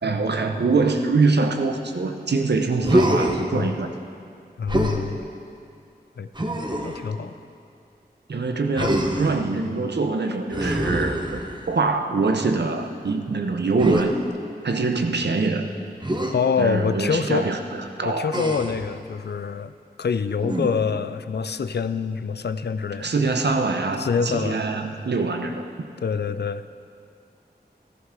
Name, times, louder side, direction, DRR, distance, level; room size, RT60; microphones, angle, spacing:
voice 1, 0.0-3.9 8.3-14.2 14.6-15.7 16.6-17.6 18.0-18.3 23.0-25.9, right 3 dB, 90° right, 5 dB, 0.8 m, -24 dB
Human voice, 2.8-3.4 4.7-5.0 6.3-7.0 8.7-9.4 10.5-11.7 13.8-14.1 16.0-16.3 18.3-18.8 20.4-20.9, right 1 dB, 25° right, 1.1 m, -24 dB
voice 2, 4.6-5.2 6.2-6.3 6.8-7.4 8.8-8.9 16.3-17.4 18.0-19.7 20.0-23.1 24.0-24.6 26.0-26.6, left 6 dB, 80° left, 12 dB, 0.4 m, -25 dB
14.0 x 14.0 x 3.8 m, 2.4 s
wide cardioid pair, 60°, 17 cm